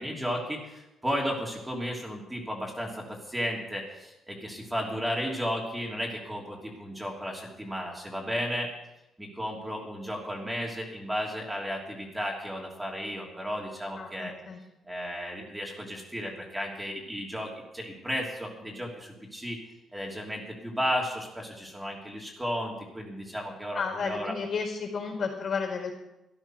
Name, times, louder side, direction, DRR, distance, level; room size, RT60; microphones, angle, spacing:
voice 1, 0.0-8.7 9.2-14.3 14.9-19.6 19.9-24.3, equal, 10° right, -1 dB, 3.2 m, -34 dB
voice 2, 14.0-14.6 23.7-25.9, left 5 dB, 55° left, 0 dB, 4.7 m, -32 dB
13.5 x 10.5 x 6.3 m, 0.93 s
cardioid pair, 90°, 0 cm